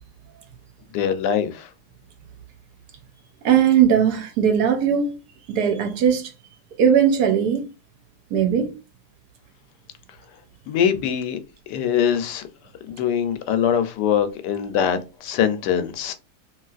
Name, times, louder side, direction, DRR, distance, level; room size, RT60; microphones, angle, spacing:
voice 1, 0.9-1.7 10.7-11.4 11.7-12.4 12.9-16.1, left 8 dB, 85° left, 1.2 m, -23 dB
voice 2, 3.4-5.2 5.5-6.3 6.8-7.7 8.3-8.7, right 8 dB, 75° right, 1.2 m, -19 dB
3.1 x 2.8 x 2.3 m
omnidirectional pair, 1.8 m